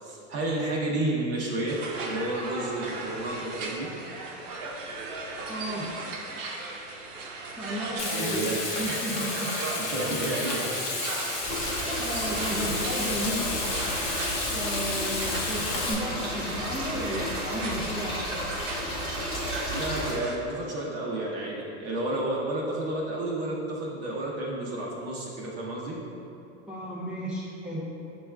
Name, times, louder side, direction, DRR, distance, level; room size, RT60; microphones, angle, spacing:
voice 1, 0.0-4.0 8.1-8.5 9.8-11.0 19.7-26.0, right 1 dB, 40° right, -4 dB, 0.8 m, -31 dB
sound 1, 1.7-20.4, right 3 dB, 70° right, 0.7 m, -37 dB
voice 2, 5.5-5.9 7.6-9.5 11.5-13.5 14.5-18.2 26.7-27.9, equal, 5° right, -7 dB, 0.4 m, -34 dB
Frying (food), 8.0-15.9, left 3 dB, 50° left, 0.9 m, -32 dB
sound 2, 11.4-20.2, equal, 15° left, 1.1 m, -33 dB
6.7 x 2.4 x 2.2 m, 2.9 s
hypercardioid pair, 115°, 39 cm